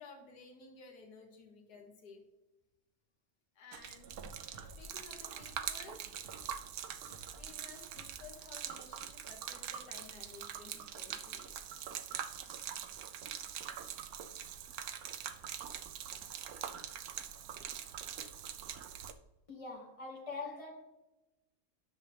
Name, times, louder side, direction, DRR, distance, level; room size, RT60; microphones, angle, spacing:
voice 1, 0.0-2.2 3.6-4.4 4.8-6.0 6.6-6.8 7.3-11.8, left 4 dB, 85° left, 1.8 m, -55 dB
Gurgling / Liquid, 3.7-19.1, right 9 dB, 75° right, 1.1 m, -44 dB
sound 1, 4.5-6.6 7.1-7.5 7.7-8.3 8.6-8.7, equal, 55° right, 1.8 m, -56 dB
voice 2, 19.5-20.8, left 3 dB, 20° left, 2.0 m, -43 dB
11.0 x 6.6 x 3.4 m
omnidirectional pair, 1.6 m